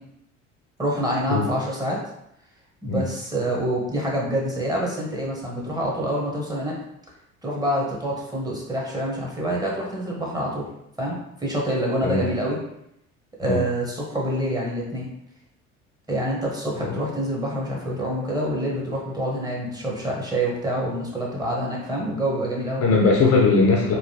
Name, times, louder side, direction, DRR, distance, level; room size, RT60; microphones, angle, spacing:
voice 1, 0.8-2.0 2.8-6.8 7.4-10.7 11.0-12.6 13.4-15.1 16.1-22.8, right 1 dB, 10° right, -3 dB, 1.0 m, -26 dB
voice 2, 22.8-23.9, left 3 dB, 40° left, -1 dB, 0.6 m, -19 dB
3.0 x 2.5 x 2.7 m, 0.78 s
figure-of-eight pair, 60°, 38 cm